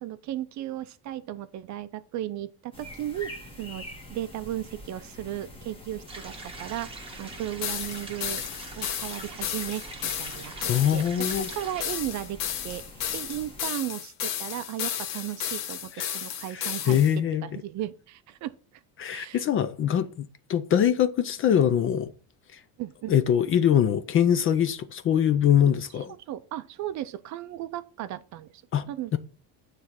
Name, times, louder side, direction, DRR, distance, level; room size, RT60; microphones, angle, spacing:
voice 1, 0.0-3.3 3.6-6.9 7.2-8.4 8.8-11.0 11.4-12.4 12.6-12.8 13.1-17.0 17.4-18.5 19.1-19.4 22.8-23.1 26.3-28.6 28.9-29.2, right 13 dB, 45° right, 0.5 m, -35 dB
sound 1, 2.7-13.6, left 1 dB, 15° left, 1.5 m, -46 dB
sound 2, 6.1-11.8, right 3 dB, 15° right, 1.2 m, -43 dB
sound 3, 7.6-17.1, left 10 dB, 50° left, 0.9 m, -33 dB
voice 2, 10.7-11.5 16.0-16.1 16.5-17.5 19.0-22.1 23.1-26.1 28.7-28.9 29.1-29.2, left 9 dB, 35° left, 0.4 m, -23 dB
9.2 x 3.3 x 5.7 m
cardioid pair, 160°, 41 cm